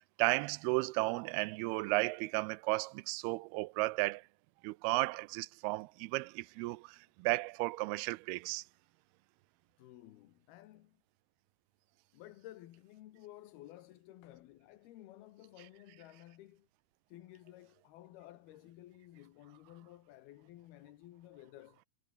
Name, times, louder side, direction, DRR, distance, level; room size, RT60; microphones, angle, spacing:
voice 1, 0.0-4.2 4.6-8.6, right 22 dB, 90° right, 2.5 m, -34 dB
voice 2, 9.8-11.0 12.1-16.7 17.1-21.8, left 14 dB, 80° left, 3.2 m, -54 dB
omnidirectional pair, 4.4 m